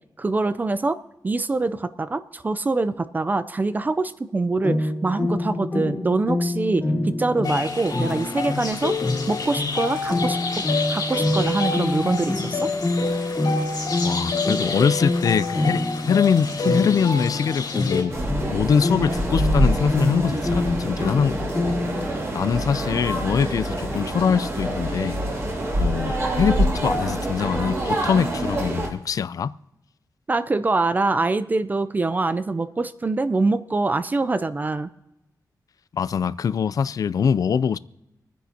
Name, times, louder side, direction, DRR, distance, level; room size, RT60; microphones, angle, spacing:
voice 1, 0.2-9.0 9.3-10.6 10.9-12.7 30.3-34.9, right 3 dB, 25° right, 0.4 m, -24 dB
sound 1, 4.6-22.1, left 2 dB, 20° left, 1.2 m, -27 dB
sound 2, 7.4-18.0, left 3 dB, 80° left, 3.3 m, -28 dB
voice 2, 14.0-18.2 18.5-21.8 22.3-25.2 25.8-29.5 35.9-37.8, left 6 dB, 55° left, 0.4 m, -23 dB
sound 3, 18.1-28.9, right 1 dB, 40° right, 2.5 m, -26 dB
27.0 x 10.0 x 2.8 m
wide cardioid pair, 150°, 7 cm